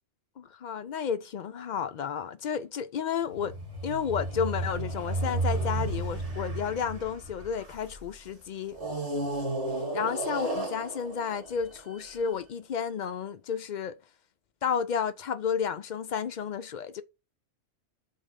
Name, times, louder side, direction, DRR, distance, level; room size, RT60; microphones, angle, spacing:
voice 1, 0.4-3.5 3.8-8.8 9.9-14.0 14.6-17.0, left 7 dB, 55° left, 0.5 m, -32 dB
sound 1, 3.3-8.0 8.7-12.2, right 2 dB, 50° right, 3.0 m, -33 dB
5.2 x 4.2 x 5.2 m
omnidirectional pair, 1.2 m